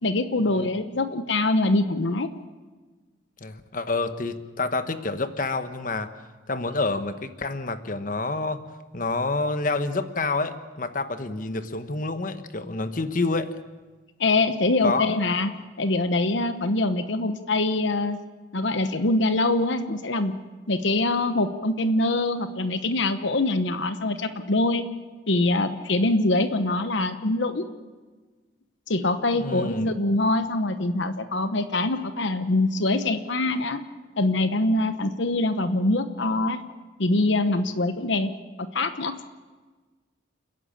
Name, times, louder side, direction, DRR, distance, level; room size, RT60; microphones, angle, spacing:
voice 1, 0.0-2.3 14.2-15.5 15.8-18.2 18.5-20.3 20.7-24.8 25.3-27.7 28.9-33.8 34.2-36.6 37.0-38.3 38.6-39.2, left 2 dB, 70° left, 10 dB, 1.0 m, -24 dB
voice 2, 3.4-6.1 6.5-8.6 8.9-13.5 14.8-15.1 29.4-29.9, left 3 dB, 45° left, 10 dB, 1.1 m, -28 dB
29.5 x 11.0 x 8.8 m, 1.3 s
head